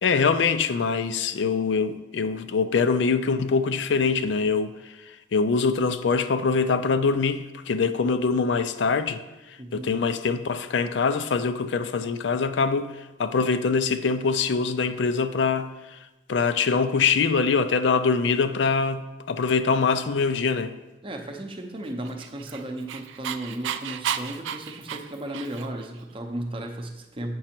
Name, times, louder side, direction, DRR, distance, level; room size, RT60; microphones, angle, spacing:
voice 1, 0.0-9.2 9.5-16.0 16.3-20.8, left 5 dB, 75° left, 0.4 m, -24 dB
voice 2, 9.6-10.1 13.5-13.6 21.0-27.4, right 1 dB, 30° right, 0.7 m, -35 dB
Dog, 22.0-25.8, right 9 dB, 85° right, 0.4 m, -33 dB
7.9 x 6.0 x 4.4 m
head